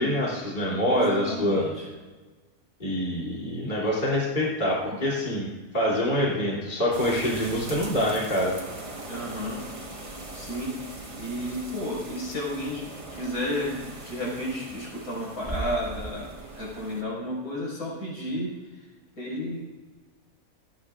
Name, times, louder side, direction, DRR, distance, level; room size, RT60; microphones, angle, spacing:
voice 1, 0.0-1.6 2.8-8.5, equal, 30° left, -5 dB, 3.2 m, -25 dB
voice 2, 0.9-1.9 9.1-9.6 10.3-18.9 19.2-19.7, left 1 dB, 75° left, -4 dB, 5.6 m, -32 dB
sound 1, 6.9-17.0, right 2 dB, 20° right, 1.3 m, -40 dB
27.0 x 9.9 x 2.5 m, 1.3 s
omnidirectional pair, 1.6 m